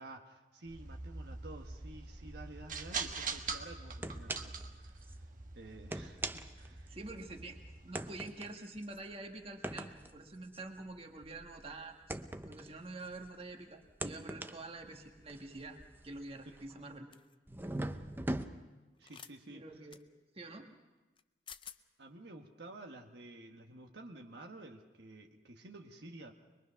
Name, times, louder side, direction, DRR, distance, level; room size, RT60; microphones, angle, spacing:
voice 1, 0.0-5.3 5.5-6.9 19.0-19.6 22.0-26.3, right 2 dB, 70° right, 2 dB, 1.4 m, -51 dB
sound 1, 0.7-8.0, right 4 dB, 50° right, 1.3 m, -44 dB
sound 2, 3.4-3.6 4.0-4.7 5.0-5.1 5.7-7.3 7.9-13.4 13.8-16.9 17.5-18.5, right 1 dB, 10° right, 0.6 m, -42 dB
voice 2, 6.9-12.2 12.4-15.8 16.0-17.1 19.5-20.0 20.3-20.7, right 2 dB, 35° right, 3 dB, 1.6 m, -47 dB
sound 3, 17.1-17.3 19.0-19.3 19.9-20.0 21.2-21.3 21.5-21.8, left 8 dB, 30° left, 0.6 m, -50 dB
23.0 x 22.5 x 5.8 m, 1.1 s
head